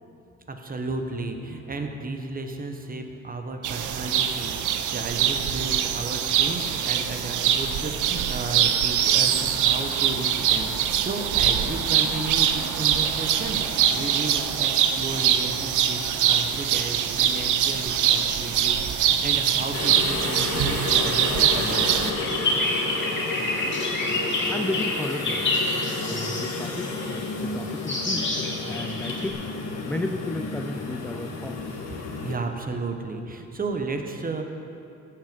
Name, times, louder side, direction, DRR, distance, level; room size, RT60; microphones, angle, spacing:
voice 1, 0.5-22.1 32.2-34.4, right 3 dB, 30° right, 5 dB, 1.2 m, -33 dB
sound 1, 3.6-22.1, right 9 dB, 80° right, 0.7 m, -23 dB
sound 2, 19.7-32.3, left 3 dB, 60° left, 1.5 m, -31 dB
sound 3, 22.2-27.2 27.9-29.3, left 2 dB, 40° left, 2.3 m, -28 dB
voice 2, 24.5-25.5 26.1-29.5 29.8-31.8, left 1 dB, 5° left, 6 dB, 0.4 m, -34 dB
15.5 x 6.5 x 5.3 m, 2.7 s
cardioid pair, 90°, 30 cm